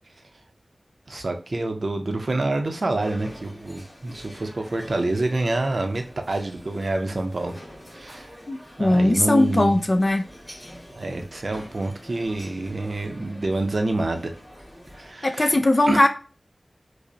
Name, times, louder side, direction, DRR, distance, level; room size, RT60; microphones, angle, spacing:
voice 1, 1.1-7.5 7.9-8.3 8.8-9.8 10.9-14.3 14.9-15.5 15.9-16.0, right 2 dB, 70° right, 5 dB, 0.5 m, -27 dB
sound 1, 3.0-15.1, equal, 20° left, 1.8 m, -46 dB
voice 2, 8.5-10.3 15.2-16.1, left 1 dB, 40° left, 6 dB, 0.5 m, -19 dB
4.9 x 2.0 x 2.7 m, 0.36 s
wide cardioid pair, 50°, 0 cm